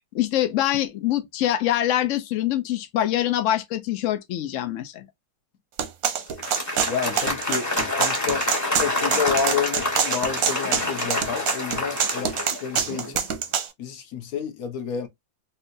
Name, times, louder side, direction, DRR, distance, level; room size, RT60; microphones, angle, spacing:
voice 1, 0.1-5.1, left 12 dB, 85° left, 0.6 m, -24 dB
sound 1, 5.8-13.7, right 8 dB, 60° right, 0.9 m, -25 dB
Applause, 6.3-13.2, left 2 dB, 10° left, 1.3 m, -28 dB
voice 2, 6.9-8.5 8.8-12.3 12.6-13.3 13.8-15.1, left 6 dB, 60° left, 1.1 m, -29 dB
3.3 x 2.8 x 2.5 m
omnidirectional pair, 2.0 m